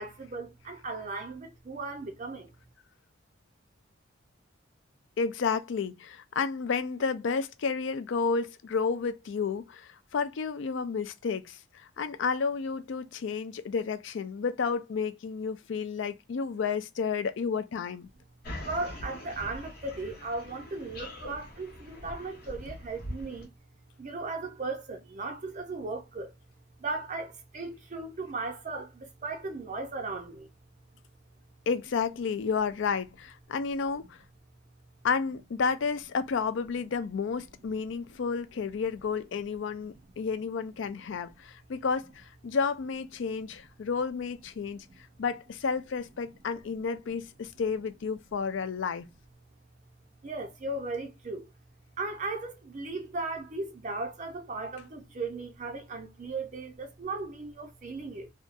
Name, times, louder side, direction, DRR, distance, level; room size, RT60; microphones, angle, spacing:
voice 1, 0.0-2.5 18.6-23.5 24.0-26.3 26.8-30.5 44.9-45.0 50.2-51.5 52.0-58.3, right 3 dB, 40° right, 0.4 m, -37 dB
voice 2, 5.2-18.1 31.7-34.2 35.0-44.9 45.2-49.0, left 5 dB, 65° left, 0.4 m, -31 dB
sound 1, 18.4-23.5, left 1 dB, 50° left, 0.9 m, -43 dB
2.7 x 2.2 x 2.4 m
head